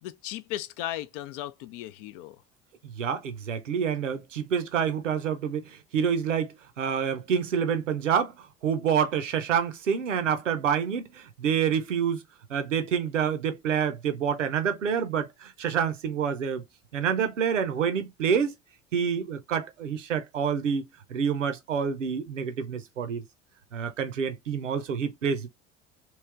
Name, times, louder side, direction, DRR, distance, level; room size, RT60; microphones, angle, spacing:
voice 1, 0.0-2.4, left 14 dB, 50° left, 0.5 m, -36 dB
voice 2, 3.0-8.3 8.6-12.2 12.5-16.6 16.9-18.5 18.9-23.2 23.7-25.5, right 7 dB, 80° right, 0.7 m, -27 dB
3.2 x 3.0 x 3.2 m
figure-of-eight pair, 65°, 36 cm